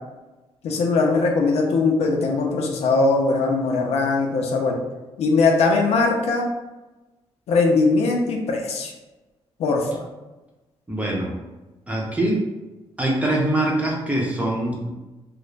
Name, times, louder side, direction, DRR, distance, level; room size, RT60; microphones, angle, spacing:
voice 1, 0.6-4.8 5.2-6.5 7.5-8.9 9.6-10.0, left 3 dB, 85° left, 1 dB, 0.5 m, -20 dB
voice 2, 10.9-11.4 11.9-12.5 13.0-14.9, right 1 dB, 15° right, -3 dB, 0.7 m, -23 dB
2.4 x 2.0 x 3.1 m, 1.1 s
cardioid pair, 105°, 11 cm